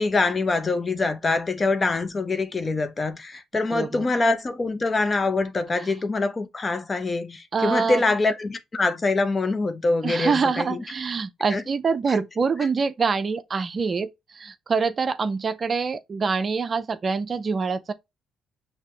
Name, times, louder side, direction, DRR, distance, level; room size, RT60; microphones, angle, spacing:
voice 1, 0.0-10.8 11.5-11.6, left 3 dB, 35° left, 0.7 m, -24 dB
voice 2, 3.7-4.0 7.5-8.0 10.0-17.9, right 5 dB, 45° right, 0.5 m, -25 dB
5.8 x 2.7 x 3.2 m
supercardioid pair, 65°, 0 cm